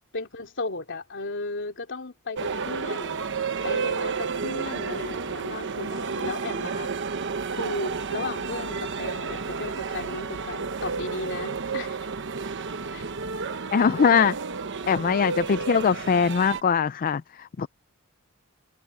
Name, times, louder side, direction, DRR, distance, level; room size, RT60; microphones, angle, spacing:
voice 1, 0.1-3.3 3.6-6.9 7.5-12.0 12.9-13.1 15.5-15.8, left 3 dB, 60° left, 3.3 m, -35 dB
sound 1, 2.4-16.6, right 5 dB, 55° right, 1.0 m, -31 dB
voice 2, 13.7-14.4 14.9-17.7, left 6 dB, 40° left, 0.4 m, -22 dB
head